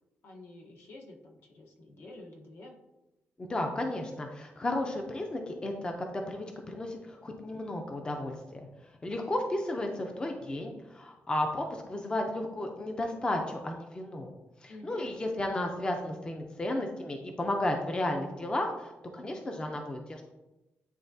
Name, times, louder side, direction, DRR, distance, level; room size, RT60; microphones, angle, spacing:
voice 1, 0.2-2.7 14.7-15.1, left 2 dB, 65° left, 0 dB, 1.1 m, -49 dB
voice 2, 3.4-8.7 9.0-14.3 14.6-20.2, left 1 dB, 20° left, 3 dB, 0.6 m, -33 dB
10.0 x 3.5 x 2.7 m, 1.0 s
wide cardioid pair, 140°, 4 cm